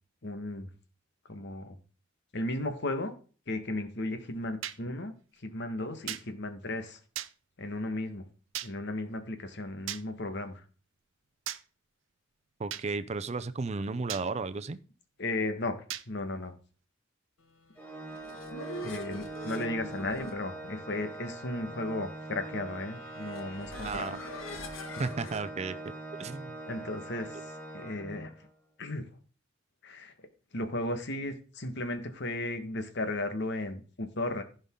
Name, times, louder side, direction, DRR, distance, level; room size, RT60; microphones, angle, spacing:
voice 1, 0.2-0.7 1.3-1.8 2.3-3.1 3.5-5.1 5.4-7.0 7.6-8.2 8.6-10.6 15.2-16.5 18.8-24.4 26.7-27.5 27.7-28.3 28.8-29.1 29.8-30.1 30.5-34.4, left 2 dB, 60° left, 1.5 m, -35 dB
sound 1, 4.6-4.8 6.1-6.2 7.2-7.3 8.5-8.7 9.9-10.0 11.5-11.6 12.7-12.9 14.1-14.3 15.9-16.1, right 12 dB, 80° right, 0.6 m, -36 dB
voice 2, 12.6-14.8 23.8-24.2 25.0-26.5, right 3 dB, 35° right, 0.5 m, -34 dB
Organ, 17.8-28.5, right 2 dB, 10° left, 1.4 m, -43 dB
sound 2, 17.9-25.4, left 1 dB, 85° left, 1.6 m, -45 dB
15.0 x 5.3 x 3.7 m
head